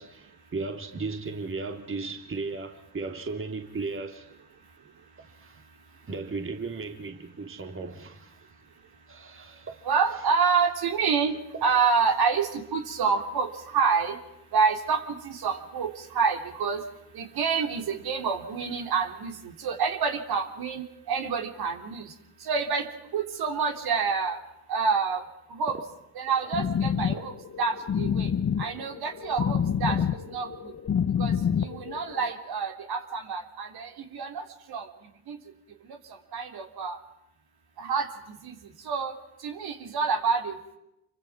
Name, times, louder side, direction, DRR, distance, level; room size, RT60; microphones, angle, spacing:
voice 1, 0.0-4.3 5.2-5.6 6.1-8.4 9.1-9.8 10.1-10.2 11.6-11.7, right 3 dB, 25° right, 2.9 m, -36 dB
voice 2, 9.8-14.2 14.5-16.8 17.1-22.1 22.4-22.8 23.1-24.4 24.7-25.2 25.5-25.8 26.1-27.3 27.6-28.3 28.6-30.0 30.3-30.7 31.2-31.3 31.6-34.8 35.3-35.4 36.3-37.0 37.8-38.1 38.4-38.6 38.8-39.1 39.4-40.8, right 5 dB, 50° right, 3.4 m, -27 dB
sound 1, 26.5-32.3, left 8 dB, 35° left, 1.5 m, -28 dB
27.5 x 24.0 x 6.1 m
hypercardioid pair, 65°, 47 cm